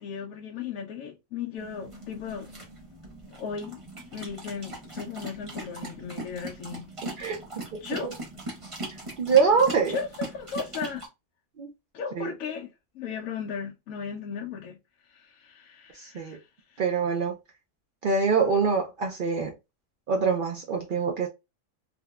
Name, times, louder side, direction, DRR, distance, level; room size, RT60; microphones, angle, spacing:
voice 1, 0.0-2.5 3.4-3.8 4.1-6.9 7.8-8.1 9.9-11.1 11.9-14.8 15.1-16.4 16.7-16.8, left 6 dB, 75° left, 1.0 m, -36 dB
sound 1, 1.6-11.1, right 1 dB, 25° right, 0.8 m, -40 dB
voice 2, 9.2-9.9 11.6-11.7 12.2-12.3 16.0-16.4 16.8-17.3 18.0-19.5 20.1-21.3, right 5 dB, 75° right, 0.4 m, -24 dB
3.5 x 2.0 x 2.2 m
omnidirectional pair, 1.5 m